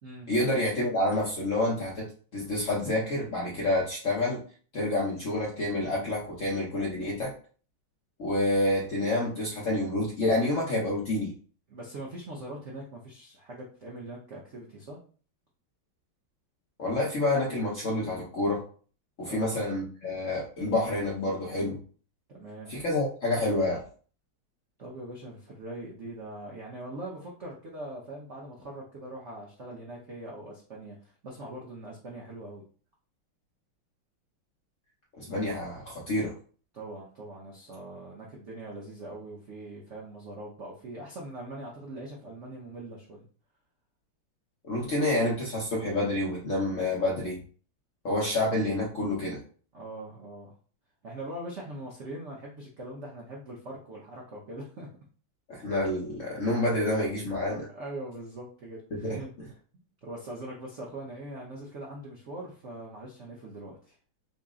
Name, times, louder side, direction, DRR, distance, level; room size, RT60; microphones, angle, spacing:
voice 1, 0.3-2.1 2.3-4.4 4.7-7.3 8.2-11.3 16.8-18.6 19.2-21.8 22.7-23.8 35.2-36.3 44.6-47.4 48.0-49.4 55.5-57.7 58.9-59.5, left 1 dB, 60° left, -4 dB, 0.8 m, -28 dB
voice 2, 11.7-15.0 19.3-19.5 22.3-22.7 24.8-32.6 35.3-35.5 36.7-43.3 49.7-50.5 51.0-54.9 57.7-59.3 60.0-63.9, right 1 dB, 80° right, -3 dB, 0.6 m, -42 dB
4.1 x 2.0 x 3.6 m, 0.41 s
omnidirectional pair, 2.3 m